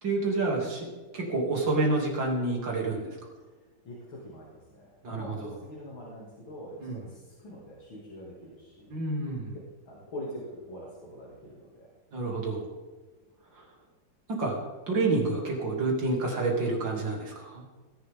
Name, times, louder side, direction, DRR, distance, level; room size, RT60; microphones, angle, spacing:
voice 1, 0.0-0.9 1.1-3.1 5.0-5.6 6.8-7.0 8.9-9.6 12.1-12.7 13.5-13.7 14.4-14.6 14.9-17.6, right 3 dB, 70° right, -1 dB, 3.7 m, -28 dB
voice 2, 3.9-9.0 9.5-11.9, equal, 85° left, -5 dB, 3.5 m, -44 dB
20.0 x 11.0 x 3.8 m, 1.3 s
omnidirectional pair, 2.1 m